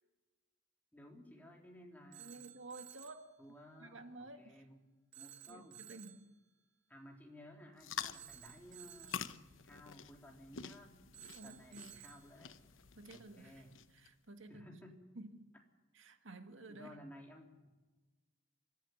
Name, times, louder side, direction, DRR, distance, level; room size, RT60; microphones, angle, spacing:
voice 1, 0.9-2.4 3.4-4.8 5.2-5.8 6.9-11.0 11.3-12.6 13.1-13.7 14.5-15.0 16.7-17.7, equal, 10° left, 0 dB, 3.8 m, -57 dB
Telephone, 2.1-3.3 5.1-6.3 8.1-9.3 11.1-12.3, right 11 dB, 65° right, 1.3 m, -55 dB
voice 2, 2.2-3.3 3.8-4.6 5.5-6.3 11.3-12.1 13.0-13.6 13.9-14.7 15.2-15.5 15.9-17.0, right 2 dB, 85° right, 7 dB, 1.8 m, -52 dB
sound 1, 7.8-14.1, left 8 dB, 90° left, 1.0 m, -48 dB
24.5 x 14.0 x 9.7 m, 1.2 s
head